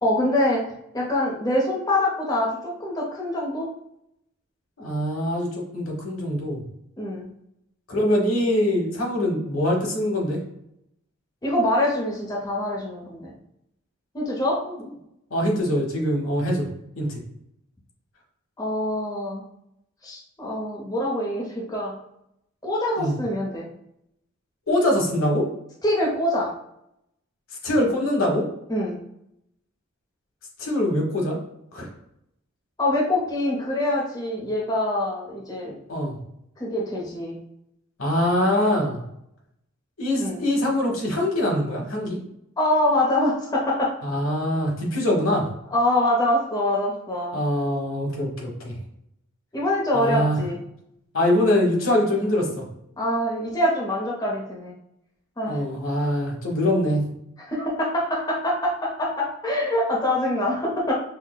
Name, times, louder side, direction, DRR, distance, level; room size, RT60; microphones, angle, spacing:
voice 1, 0.0-0.6 0.9-3.7 7.0-7.3 11.4-13.3 14.1-14.6 18.6-19.4 20.0-22.0 22.6-23.7 25.8-26.5 28.7-29.0 32.8-35.8 36.6-37.4 40.2-40.4 42.6-43.9 45.7-47.4 49.5-50.6 53.0-54.7 55.4-55.6 57.5-60.9, left 1 dB, 20° left, -3 dB, 0.6 m, -24 dB
voice 2, 4.8-6.6 7.9-10.4 14.6-14.8 15.3-16.7 17.0-17.2 23.0-23.2 24.7-25.5 27.6-28.5 30.6-31.4 31.7-31.9 35.9-36.2 38.0-39.0 40.0-42.2 44.0-45.5 47.3-48.7 49.9-50.4 51.1-52.6 55.5-57.0, left 1 dB, 75° left, -1 dB, 1.1 m, -23 dB
5.6 x 2.1 x 2.2 m, 0.78 s
head